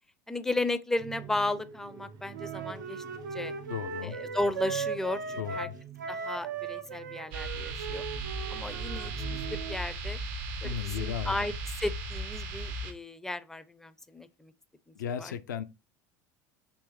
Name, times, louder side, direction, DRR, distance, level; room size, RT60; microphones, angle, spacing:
voice 1, 0.3-3.0 3.3-3.5 4.0-5.7 6.1-8.0 8.5-10.2 10.6-14.5 14.9-15.3, left 2 dB, 5° left, 0.4 m, -34 dB
sound 1, 1.0-9.6, right 7 dB, 45° right, 0.6 m, -47 dB
Wind instrument woodwind instrument, 2.3-9.8, right 5 dB, 90° right, 0.4 m, -38 dB
voice 2, 3.7-4.2 5.4-5.7 10.6-11.4 15.0-15.6, left 9 dB, 85° left, 0.4 m, -35 dB
sound 2, 7.3-12.9, right 2 dB, 70° right, 0.8 m, -36 dB
3.4 x 3.1 x 3.1 m
hypercardioid pair, 80°, 10 cm